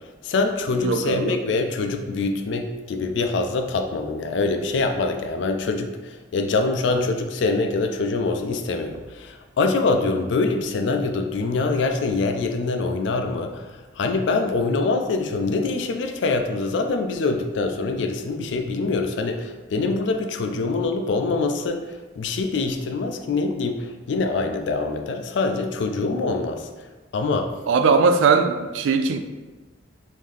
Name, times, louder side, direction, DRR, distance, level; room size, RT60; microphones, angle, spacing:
voice 1, 0.2-13.6 14.0-21.8 22.2-23.8 24.1-26.7 27.1-27.5, left 3 dB, 70° left, 5 dB, 0.4 m, -24 dB
voice 2, 0.8-1.4 6.9-7.0 18.4-18.5 20.5-20.7 27.7-29.2, right 5 dB, 80° right, 7 dB, 0.3 m, -20 dB
3.6 x 2.6 x 3.2 m, 1.3 s
head